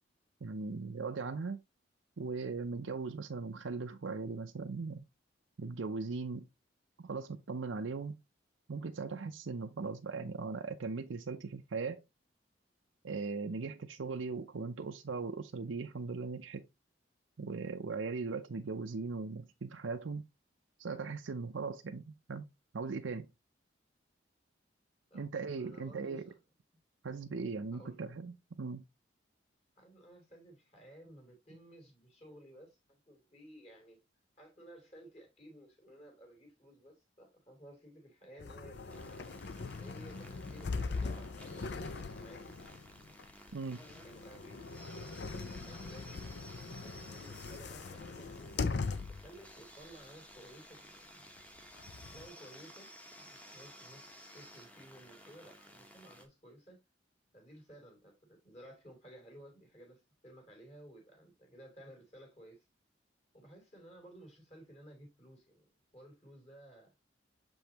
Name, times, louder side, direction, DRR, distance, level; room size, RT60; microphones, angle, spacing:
voice 1, 0.4-1.6 2.2-5.0 5.6-6.5 7.0-8.1 8.7-12.0 13.0-16.7 17.4-20.2 20.8-22.5 22.7-23.3 25.1-26.3 27.0-28.8 43.5-43.8, right 4 dB, 85° right, 0.6 m, -39 dB
voice 2, 25.5-26.3 27.7-28.1 29.8-34.0 34.4-39.1 39.7-42.6 43.8-44.6 45.2-46.3 46.6-48.7 49.1-51.2 52.1-52.9 53.2-56.8 57.3-62.7 63.3-65.6 65.9-66.9, right 1 dB, 35° left, 3.0 m, -56 dB
sound 1, 38.4-49.4 49.8-49.9 51.4-52.3, left 4 dB, 60° left, 0.5 m, -41 dB
sound 2, 38.7-56.3, equal, 5° left, 1.0 m, -55 dB
7.0 x 5.3 x 2.9 m
head